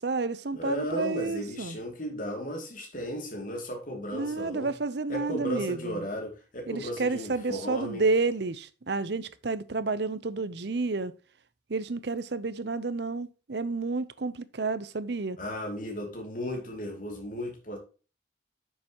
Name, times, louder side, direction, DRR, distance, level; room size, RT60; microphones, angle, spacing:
voice 1, 0.0-1.8 4.1-6.0 6.7-11.1 11.7-15.4, right 3 dB, 60° right, 0.7 m, -30 dB
voice 2, 0.5-4.7 5.1-8.0 15.4-17.8, equal, 45° left, 2.8 m, -35 dB
9.6 x 6.9 x 3.0 m
head